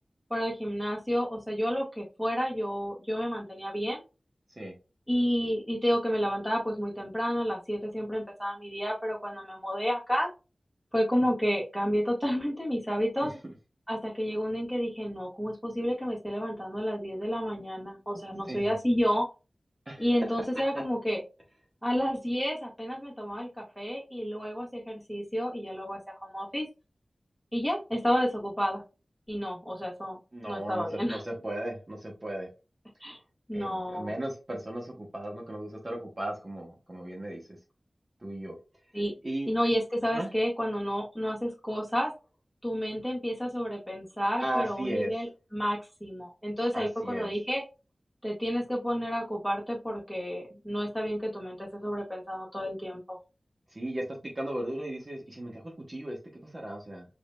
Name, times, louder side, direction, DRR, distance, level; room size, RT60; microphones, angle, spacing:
voice 1, 0.3-4.0 5.1-10.3 10.9-13.3 13.9-19.3 20.0-21.2 21.8-26.7 27.5-28.8 29.3-30.2 30.4-31.2 33.0-33.2 33.5-34.1 38.9-39.1 39.4-42.1 42.6-47.6 48.2-53.2, equal, ahead, -3 dB, 1.6 m, -30 dB
voice 2, 19.9-20.2 30.3-32.5 33.5-37.6 38.2-38.6 39.2-39.5 40.1-40.3 44.4-45.1 46.7-47.3 53.7-54.0 54.3-57.0, right 1 dB, 35° right, -1 dB, 1.2 m, -36 dB
4.8 x 2.7 x 2.3 m, 0.30 s
wide cardioid pair, 60°, 0 cm